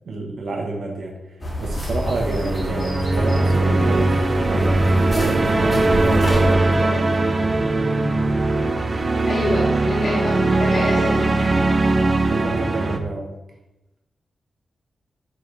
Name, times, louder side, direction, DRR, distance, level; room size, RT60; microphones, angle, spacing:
voice 1, 0.0-1.1 1.6-7.4 12.3-13.3, right 2 dB, 70° right, 0 dB, 1.3 m, -29 dB
sound 1, 1.4-6.5, equal, 20° left, 2.6 m, -28 dB
sound 2, 1.9-13.0, right 2 dB, 30° right, 0.5 m, -20 dB
sound 3, 3.3-9.3, left 1 dB, 80° left, 2.5 m, -33 dB
voice 2, 9.3-11.5, left 1 dB, 65° left, -8 dB, 2.2 m, -26 dB
11.5 x 3.9 x 3.4 m, 0.98 s
wide cardioid pair, 170°, 0 cm